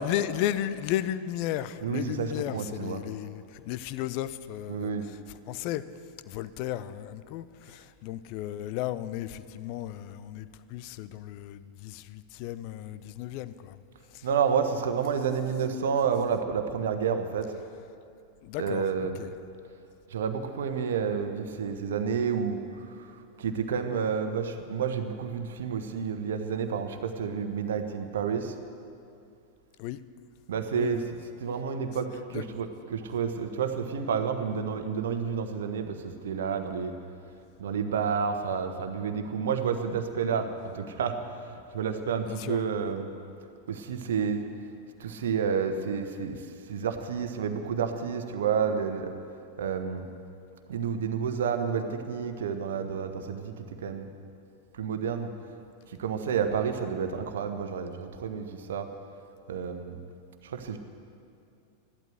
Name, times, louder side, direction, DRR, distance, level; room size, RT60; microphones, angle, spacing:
voice 1, 0.0-5.9 6.3-13.8 14.1-14.3 18.4-19.3 29.8-30.0 30.8-31.0 32.3-32.5 42.3-42.6, left 12 dB, 45° left, 14 dB, 0.6 m, -34 dB
voice 2, 1.8-3.0 4.7-5.1 14.2-17.5 18.6-19.2 20.1-22.6 22.9-23.1 23.4-28.5 30.5-36.9 37.6-40.5 40.7-43.1 43.7-44.4 45.0-46.4 46.7-49.1 49.6-50.1 50.7-54.1 54.7-55.3 55.9-58.9 59.5-60.0 60.4-60.8, right 6 dB, 60° right, 7 dB, 1.2 m, -30 dB
15.0 x 12.0 x 8.1 m, 2.5 s
figure-of-eight pair, 90°, 0 cm